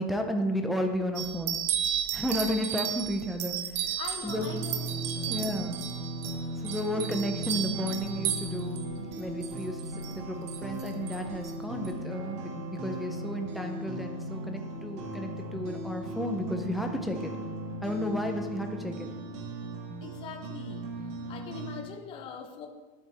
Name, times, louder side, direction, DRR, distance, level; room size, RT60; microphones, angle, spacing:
voice 1, 0.0-1.6 2.1-3.6 4.2-4.5 5.3-5.8 6.6-8.8 9.2-17.3 17.8-18.9, equal, ahead, 2 dB, 0.6 m, -32 dB
sound 1, 1.2-8.8 9.1-10.1 10.5-11.2 11.4-11.5 11.8-11.9, right 10 dB, 40° right, 0.9 m, -34 dB
voice 2, 4.0-5.5 20.0-20.9 21.3-22.7, left 7 dB, 30° left, 3 dB, 0.9 m, -42 dB
sound 2, 4.3-21.8, right 1 dB, 60° right, 1.8 m, -37 dB
12.0 x 8.3 x 3.4 m, 1.3 s
supercardioid pair, 170°, 17 cm